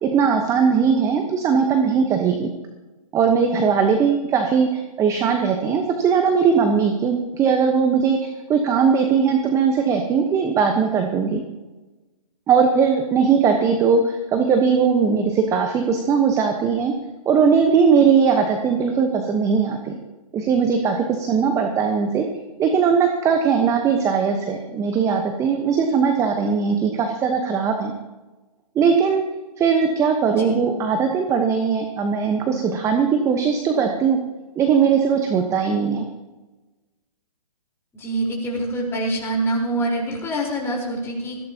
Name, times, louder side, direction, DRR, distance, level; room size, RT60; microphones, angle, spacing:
voice 1, 0.0-2.5 3.1-11.4 12.5-16.9 17.2-19.9 20.3-22.3 22.6-27.9 28.7-29.2 29.6-34.2 34.6-36.0, right 6 dB, 15° right, 5 dB, 1.1 m, -19 dB
voice 2, 37.9-41.4, right 1 dB, 10° left, -1 dB, 4.1 m, -25 dB
20.5 x 15.5 x 2.9 m, 1.1 s
figure-of-eight pair, 130°, 20 cm